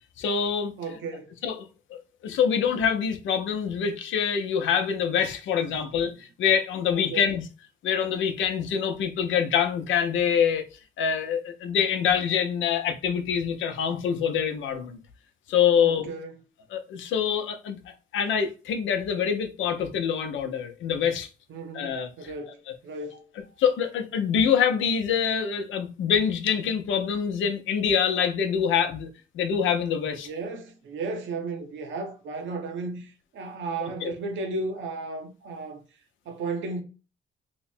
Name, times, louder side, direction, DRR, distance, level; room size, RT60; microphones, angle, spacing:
voice 1, 0.2-0.7 1.4-7.4 7.8-10.6 11.0-15.0 15.5-16.1 16.7-17.8 18.1-21.3 21.7-22.1 23.6-29.1 29.3-30.3 34.0-34.1, left 7 dB, 80° left, 0.7 m, -25 dB
voice 2, 0.8-1.4 6.9-7.3 15.8-16.3 21.5-21.9 22.2-23.3 30.2-35.8 36.3-36.8, right 3 dB, 75° right, 0.8 m, -34 dB
3.0 x 2.1 x 4.2 m
cardioid pair, 90°, 20 cm